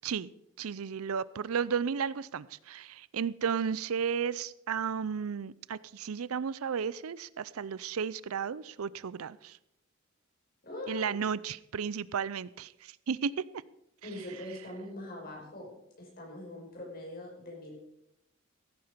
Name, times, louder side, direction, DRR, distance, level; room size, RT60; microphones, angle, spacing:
voice 1, 0.6-9.6 10.9-13.4, right 6 dB, 85° right, 19 dB, 0.5 m, -33 dB
voice 2, 10.6-11.2 14.0-15.7 16.0-17.8, left 1 dB, 45° left, -1 dB, 5.4 m, -42 dB
15.5 x 9.6 x 5.1 m, 0.82 s
head